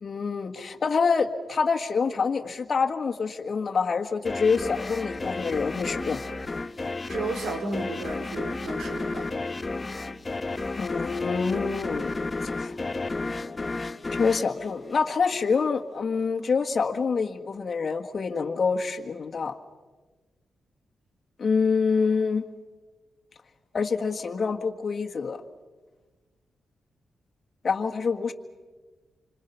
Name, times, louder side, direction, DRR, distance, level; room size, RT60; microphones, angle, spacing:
voice 1, 0.0-6.2 10.7-12.1 12.4-12.7 14.1-19.6 21.4-22.4 23.7-25.4 27.6-28.3, left 5 dB, 45° left, 4 dB, 1.7 m, -26 dB
sound 1, 4.3-15.5, left 3 dB, 30° left, 1.0 m, -32 dB
voice 2, 7.1-9.3, right 3 dB, 90° right, 3 dB, 4.5 m, -33 dB
29.0 x 25.5 x 5.6 m, 1.3 s
cardioid pair, 95°, 0 cm